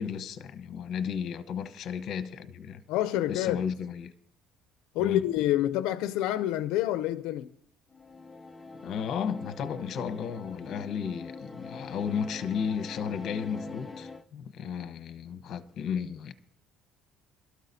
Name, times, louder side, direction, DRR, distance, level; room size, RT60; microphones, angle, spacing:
voice 1, 0.0-2.8 3.3-4.1 5.0-5.2 8.8-16.3, left 7 dB, 50° left, 0.9 m, -33 dB
voice 2, 2.9-3.6 4.9-7.5, left 13 dB, 85° left, 0.5 m, -27 dB
sound 1, 7.9-14.2, left 3 dB, 10° left, 0.6 m, -44 dB
23.5 x 13.0 x 2.7 m
cardioid pair, 145°, 0 cm